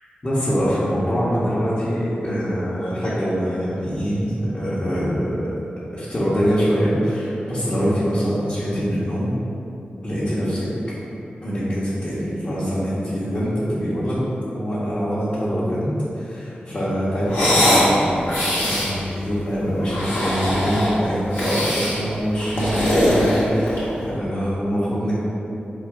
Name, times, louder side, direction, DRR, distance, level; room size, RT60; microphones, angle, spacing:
voice 1, 0.2-5.5 5.9-9.3 10.0-10.7 11.4-14.2 14.5-18.3 18.6-25.1, equal, 35° left, -11 dB, 1.1 m, -24 dB
sound 1, 17.3-17.9 18.3-18.9 19.8-21.0 21.3-22.0 22.4-23.9, equal, 85° left, 1.3 m, -21 dB
4.4 x 2.6 x 4.6 m, 2.9 s
cardioid pair, 55°, 3 cm